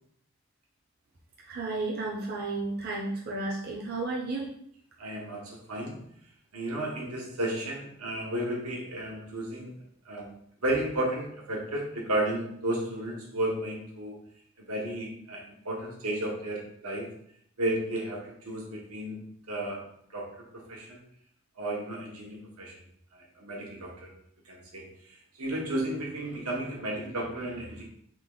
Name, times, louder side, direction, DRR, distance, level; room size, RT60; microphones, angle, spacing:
voice 1, 1.4-4.5, right 2 dB, 45° right, -4 dB, 0.6 m, -33 dB
voice 2, 5.0-6.1 6.5-9.8 10.0-10.3 10.6-14.2 14.6-17.1 17.6-19.2 19.5-19.8 20.1-20.3 20.5-21.0 21.6-22.8 23.1-24.1 24.4-27.8, right 1 dB, 85° right, -2 dB, 1.2 m, -33 dB
3.8 x 3.0 x 3.8 m, 0.68 s
head